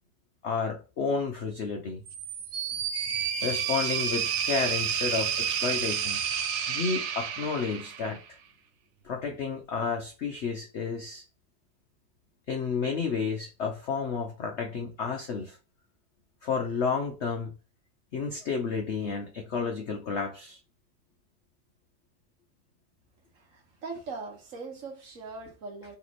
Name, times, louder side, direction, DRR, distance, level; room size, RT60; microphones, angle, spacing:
voice 1, 0.4-2.0 3.4-6.2 6.7-8.4 9.0-11.2 12.5-15.6 16.4-17.5 18.1-20.6, left 5 dB, 75° left, 0.6 m, -31 dB
sound 1, 2.1-8.3, right 7 dB, 70° right, 0.7 m, -30 dB
voice 2, 23.3-26.0, right 4 dB, 50° right, 1.2 m, -41 dB
3.4 x 3.1 x 4.0 m
omnidirectional pair, 2.0 m